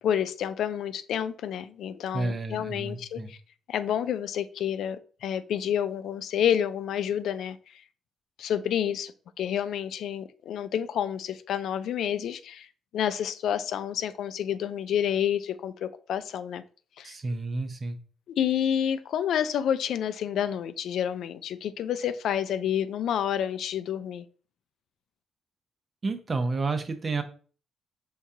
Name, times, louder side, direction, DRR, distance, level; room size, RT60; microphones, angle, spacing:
voice 1, 0.0-3.4 3.7-7.6 8.4-9.1 9.4-12.7 12.9-16.6 17.0-17.1 18.4-24.2, left 9 dB, 75° left, 0.3 m, -29 dB
voice 2, 2.1-3.3 17.0-18.0 26.0-27.2, right 3 dB, 40° right, 0.7 m, -30 dB
4.5 x 3.7 x 2.7 m
cardioid pair, 80°, 0 cm